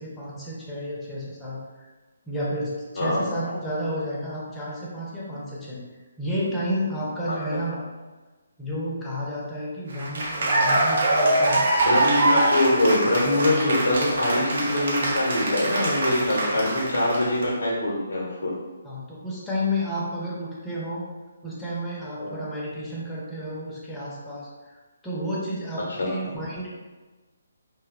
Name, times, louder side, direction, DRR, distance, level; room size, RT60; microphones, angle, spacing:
voice 1, 0.0-1.9 2.3-5.8 6.2-7.8 8.6-11.6 13.5-13.7 16.4-16.5 16.8-17.0 18.8-21.0 21.4-24.8 25.0-26.7, equal, 10° left, -7 dB, 0.6 m, -31 dB
Cheering / Applause, 9.9-17.4, right 2 dB, 60° right, 0.6 m, -24 dB
voice 2, 11.8-18.5 22.2-22.4 25.9-26.2, left 1 dB, 60° left, -4 dB, 0.6 m, -23 dB
2.6 x 2.0 x 2.4 m, 1.2 s
figure-of-eight pair, 140°, 0 cm